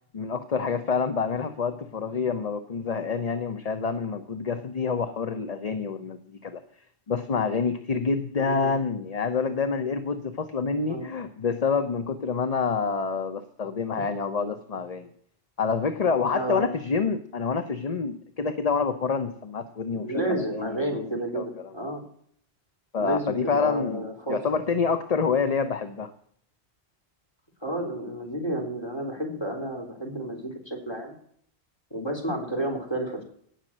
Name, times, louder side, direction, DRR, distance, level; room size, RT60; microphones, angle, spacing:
voice 1, 0.1-6.6 7.1-15.1 15.6-20.8 21.3-21.7 22.9-26.1, left 5 dB, 40° left, 10 dB, 0.8 m, -27 dB
voice 2, 8.4-8.7 10.9-11.1 16.3-16.7 19.9-22.0 23.0-24.4 27.6-31.1 31.9-33.2, right 1 dB, 25° left, 1 dB, 3.8 m, -31 dB
17.5 x 6.8 x 7.4 m, 0.65 s
omnidirectional pair, 1.1 m